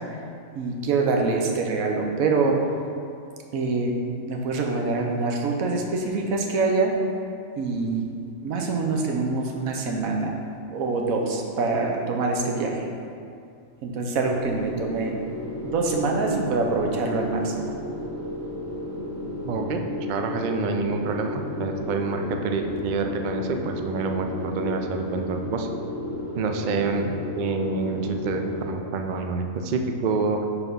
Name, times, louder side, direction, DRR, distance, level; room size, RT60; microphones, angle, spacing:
voice 1, 0.5-2.6 3.5-3.9 4.3-6.9 7.6-8.1 8.4-10.3 10.7-12.8 13.8-15.1 15.6-17.7, right 3 dB, 85° right, 1 dB, 1.2 m, -25 dB
sound 1, 14.3-28.7, left 1 dB, 25° left, 0.3 m, -33 dB
voice 2, 19.4-25.7 26.4-30.4, right 4 dB, 70° right, 4 dB, 0.4 m, -27 dB
5.6 x 4.2 x 5.4 m, 2.4 s
omnidirectional pair, 1.4 m